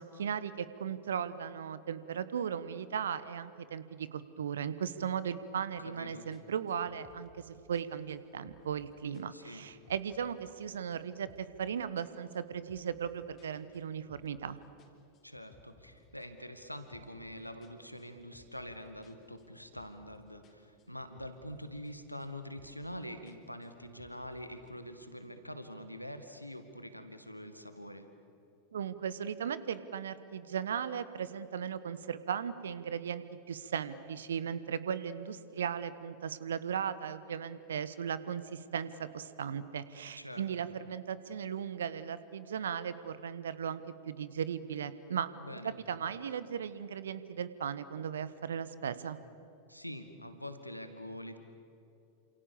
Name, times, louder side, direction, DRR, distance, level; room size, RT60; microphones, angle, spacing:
voice 1, 0.0-14.6 28.7-45.3 45.6-49.2, right 8 dB, 65° right, 15 dB, 1.2 m, -37 dB
voice 2, 5.8-6.3 9.3-9.6 15.2-28.1 40.2-40.7 45.4-45.8 49.7-51.4, equal, 90° left, 8 dB, 2.0 m, -45 dB
sound 1, 5.8-6.0 6.3-8.8 9.1-10.6 10.9-11.6 12.0-14.5 14.8-17.3 17.6-20.2 20.4-21.9 22.2-22.9 23.3-24.7, left 3 dB, 30° left, 3.8 m, -62 dB
28.5 x 27.0 x 7.1 m, 2.8 s
figure-of-eight pair, 90°, 0 cm